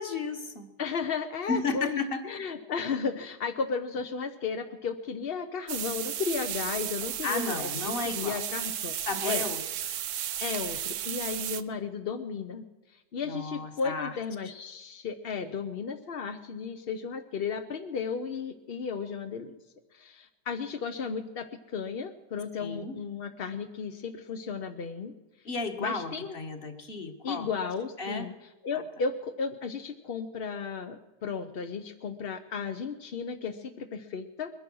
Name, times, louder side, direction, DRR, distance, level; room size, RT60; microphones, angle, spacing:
voice 1, 0.0-0.7 1.5-2.5 7.2-8.4 9.0-9.6 13.2-14.2 22.6-23.0 25.4-27.5 28.0-28.3 28.7-28.8, left 4 dB, 35° left, 6 dB, 1.5 m, -34 dB
voice 2, 0.8-7.7 8.0-9.4 10.4-19.5 19.9-25.1 25.8-26.4 27.2-28.3 28.6-34.5, left 5 dB, 50° left, 6 dB, 0.7 m, -34 dB
sound 1, 5.7-11.6, right 10 dB, 65° right, 0.8 m, -34 dB
21.0 x 10.5 x 6.2 m, 1.1 s
omnidirectional pair, 1.8 m